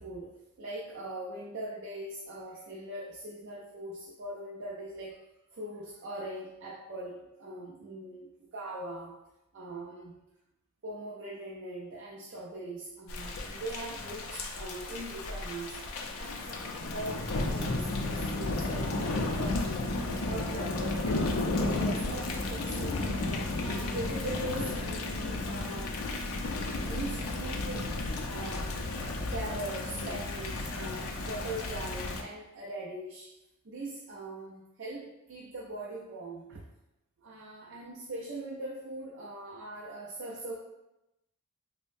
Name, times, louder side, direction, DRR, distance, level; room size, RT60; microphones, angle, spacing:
voice 1, 0.0-5.2 5.5-9.2 9.5-10.2 10.8-15.8 16.2-19.9 20.3-23.3 23.6-26.0 26.8-33.3 33.6-36.6 37.2-40.6, right 1 dB, 55° right, -2 dB, 0.4 m, -41 dB
Thunder / Rain, 13.1-32.2, left 2 dB, 75° left, 0.4 m, -33 dB
5.1 x 2.0 x 2.5 m, 0.91 s
head